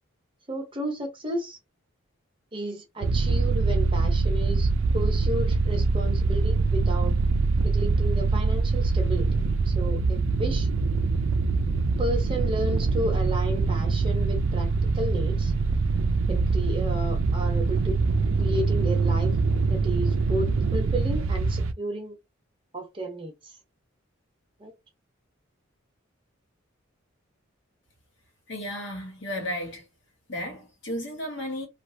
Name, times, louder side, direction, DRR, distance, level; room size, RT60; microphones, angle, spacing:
voice 1, 0.5-1.6 2.5-7.1 7.6-10.7 12.0-15.5 16.3-18.0 18.4-19.3 19.7-22.2 22.7-23.6 24.6-24.7, right 1 dB, 25° right, 0.8 m, -33 dB
sound 1, 3.0-21.7, right 3 dB, 75° right, 0.4 m, -24 dB
voice 2, 28.5-29.9 30.3-31.7, left 1 dB, 60° left, 1.3 m, -33 dB
3.0 x 2.4 x 2.7 m
head